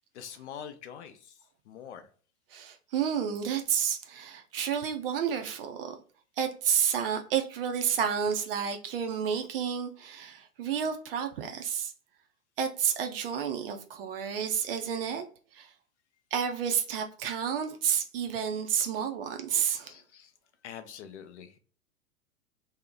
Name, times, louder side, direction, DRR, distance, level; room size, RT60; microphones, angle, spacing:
voice 1, 0.1-1.4 1.7-2.1 19.8-20.3 20.6-21.6, left 8 dB, 50° left, 0.6 m, -44 dB
voice 2, 2.5-6.0 6.4-11.9 12.6-15.2 15.5-15.7 16.3-19.9, right 8 dB, 40° right, 0.5 m, -30 dB
2.7 x 2.0 x 3.7 m
figure-of-eight pair, 100°, 44 cm